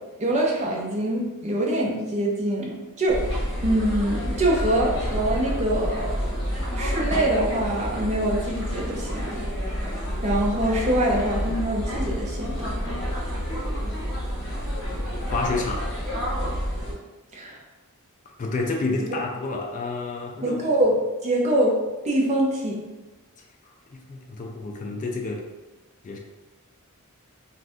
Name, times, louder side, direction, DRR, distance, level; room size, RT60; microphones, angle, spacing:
voice 1, 0.2-3.2 3.6-6.1 6.7-9.4 10.2-12.7 17.3-17.6 19.1-19.2 20.4-20.9 21.2-21.8 22.0-22.8, right 1 dB, 30° right, -3 dB, 0.6 m, -24 dB
sound 1, 3.1-16.9, equal, 55° left, 1.1 m, -29 dB
voice 2, 15.3-15.9 18.4-20.6 23.9-25.5 26.0-26.2, left 3 dB, 35° left, 1 dB, 0.3 m, -29 dB
2.6 x 2.4 x 3.4 m, 1.1 s
head